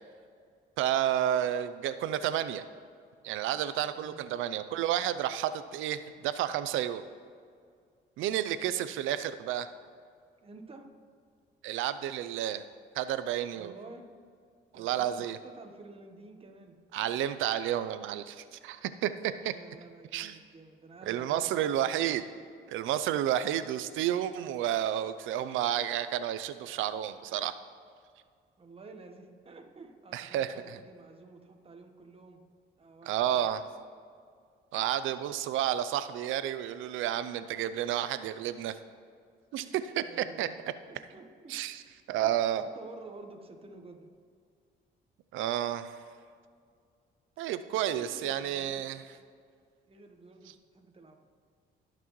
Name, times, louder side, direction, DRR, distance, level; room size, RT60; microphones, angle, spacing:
voice 1, 0.8-2.6 3.2-7.0 8.2-9.7 11.6-12.6 12.9-13.7 14.7-15.4 16.9-19.5 20.1-20.4 21.1-22.2 22.7-27.5 30.1-30.8 33.1-33.6 34.7-38.8 39.5-39.6 40.0-40.5 41.5-41.8 42.1-42.6 45.3-46.0 47.4-49.0, right 11 dB, 90° right, 13 dB, 0.5 m, -31 dB
voice 2, 3.9-4.3 10.4-10.9 13.5-14.0 14.7-16.8 19.5-22.0 28.6-32.4 32.8-33.5 39.6-39.7 40.0-40.6 40.9-41.6 42.2-44.1 47.7-48.9 49.9-51.2, right 3 dB, 30° right, 4 dB, 1.2 m, -50 dB
18.0 x 6.0 x 3.1 m, 2.1 s
cardioid pair, 90°, 20 cm